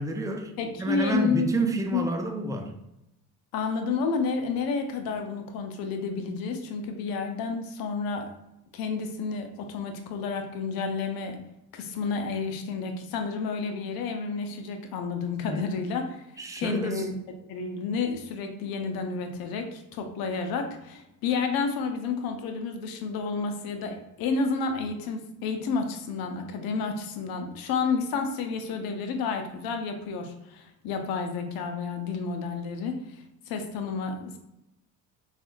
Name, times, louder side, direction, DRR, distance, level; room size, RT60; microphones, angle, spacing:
voice 1, 0.0-0.5 0.8-2.7 15.4-15.7 16.4-17.1, right 1 dB, 10° right, 4 dB, 0.3 m, -29 dB
voice 2, 0.6-1.5 1.9-2.0 2.6-2.7 3.5-8.3 8.7-11.4 11.7-16.2 16.6-17.2 17.5-33.0 33.5-34.4, left 4 dB, 75° left, 5 dB, 0.6 m, -30 dB
3.5 x 2.4 x 2.5 m, 0.88 s
cardioid pair, 100°, 36 cm